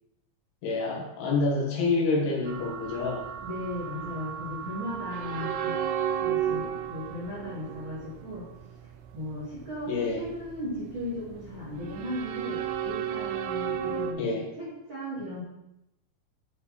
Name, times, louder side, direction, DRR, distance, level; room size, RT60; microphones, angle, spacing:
voice 1, 0.6-3.2 9.9-10.2 14.2-14.5, left 3 dB, 75° left, -3 dB, 4.3 m, -27 dB
sound 1, 2.5-14.1, right 9 dB, 80° right, 2.3 m, -34 dB
voice 2, 3.4-5.8 6.2-8.5 9.1-14.3 14.6-15.4, left 1 dB, 35° right, -9 dB, 2.3 m, -36 dB
11.0 x 5.3 x 4.3 m, 0.89 s
omnidirectional pair, 5.4 m